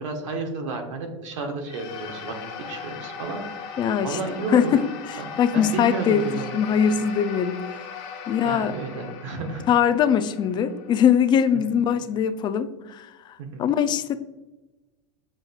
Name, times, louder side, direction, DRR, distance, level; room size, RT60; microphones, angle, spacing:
voice 1, 0.0-2.4 2.7-3.7 4.0-4.7 5.2-6.6 8.4-9.7 13.4-13.6, right 3 dB, 80° right, 4 dB, 1.1 m, -32 dB
sound 1, 1.6-12.2, left 6 dB, 65° left, 0.8 m, -39 dB
voice 2, 3.8-4.2 4.5-4.8 5.1-7.5 8.3-8.7 9.7-13.1 13.6-14.2, left 8 dB, 30° left, 12 dB, 0.3 m, -21 dB
7.4 x 2.6 x 2.4 m, 1.1 s
hypercardioid pair, 110°, 16 cm